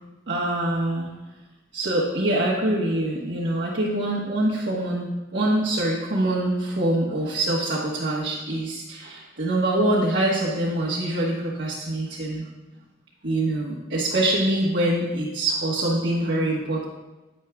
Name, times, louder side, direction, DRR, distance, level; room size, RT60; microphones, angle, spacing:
voice 1, 0.3-1.1 1.7-12.5 13.2-16.8, right 1 dB, 65° right, -7 dB, 1.3 m, -24 dB
9.5 x 9.2 x 2.3 m, 1.1 s
head